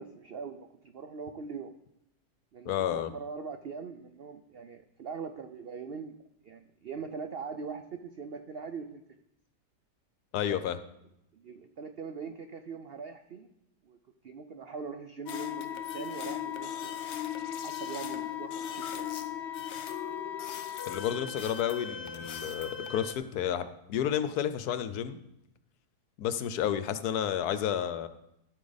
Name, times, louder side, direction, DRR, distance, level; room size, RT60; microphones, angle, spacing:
voice 1, 0.0-1.7 2.5-6.2 6.4-9.0 11.3-13.5 13.8-14.0 14.2-17.0 17.6-19.1, right 5 dB, 85° right, 8 dB, 0.5 m, -42 dB
voice 2, 2.7-3.1 10.3-10.8 20.9-25.2 26.2-28.1, left 9 dB, 70° left, 12 dB, 1.1 m, -31 dB
sound 1, 15.3-23.1, left 9 dB, 55° left, 0.8 m, -37 dB
12.5 x 8.3 x 4.0 m, 0.82 s
omnidirectional pair, 1.8 m